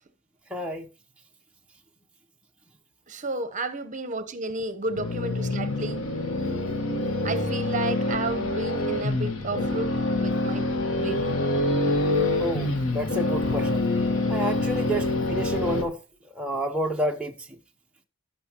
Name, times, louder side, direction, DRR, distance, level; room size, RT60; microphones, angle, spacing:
voice 1, 0.5-0.9 12.4-13.8 14.3-16.0 16.4-17.5, equal, 5° right, 0.7 m, -29 dB
voice 2, 3.1-6.0 7.2-9.9 10.2-10.7 10.9-11.4, right 2 dB, 40° right, 0.9 m, -32 dB
sound 1, 4.9-15.8, left 2 dB, 85° left, 1.3 m, -26 dB
16.5 x 6.0 x 2.9 m
head